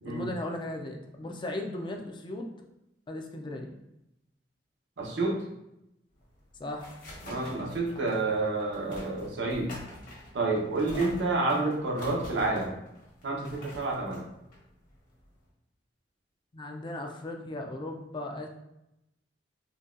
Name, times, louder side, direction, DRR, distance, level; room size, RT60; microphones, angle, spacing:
voice 1, 0.1-2.5 3.1-3.7 6.6-6.9 10.9-11.1 16.5-18.5, left 1 dB, 25° left, 2 dB, 0.4 m, -37 dB
voice 2, 5.0-5.4 7.2-9.7 10.3-12.8 13.2-14.2, right 2 dB, 80° right, -2 dB, 0.8 m, -29 dB
sound 1, 6.2-15.5, left 1 dB, 50° left, 1.1 m, -46 dB
3.9 x 2.2 x 2.5 m, 0.87 s
head